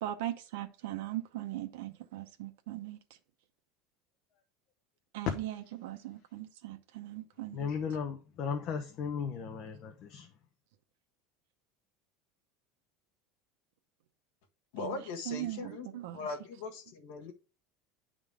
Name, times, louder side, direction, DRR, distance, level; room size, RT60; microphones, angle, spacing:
voice 1, 0.0-3.0 5.1-7.7 14.8-16.3, right 14 dB, 85° right, 0.8 m, -39 dB
voice 2, 7.5-10.3, left 6 dB, 40° left, 0.9 m, -36 dB
voice 3, 14.7-17.3, left 4 dB, 80° left, 1.6 m, -40 dB
10.0 x 3.8 x 4.9 m
cardioid pair, 165°, 0 cm